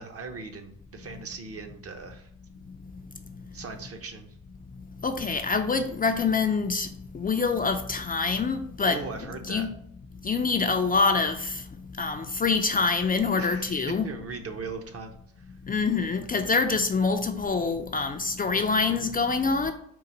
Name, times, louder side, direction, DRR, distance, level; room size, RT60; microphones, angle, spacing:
voice 1, 0.0-2.3 3.5-4.3 8.8-9.7 13.4-13.7 14.0-15.1, right 4 dB, 45° right, 0.8 m, -39 dB
voice 2, 5.0-6.9 7.1-9.7 10.2-11.6 12.0-14.1 15.7-19.7, left 4 dB, 25° left, 0.4 m, -25 dB
3.8 x 2.5 x 4.2 m
supercardioid pair, 70°, 33 cm